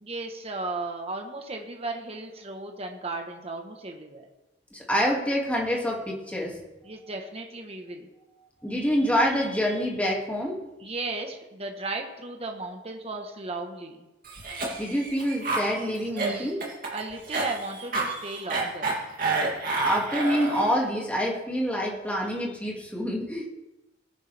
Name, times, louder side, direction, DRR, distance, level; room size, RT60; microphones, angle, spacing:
voice 1, 0.0-4.3 6.8-8.1 10.8-14.1 16.1-16.6 16.9-19.0, right 2 dB, 30° right, 3 dB, 1.2 m, -35 dB
voice 2, 4.7-6.6 8.6-10.5 14.8-16.6 19.8-23.5, equal, 5° left, -2 dB, 2.3 m, -26 dB
Cough, 14.2-20.8, right 3 dB, 45° right, 2.8 m, -29 dB
19.0 x 11.0 x 3.5 m, 1.0 s
head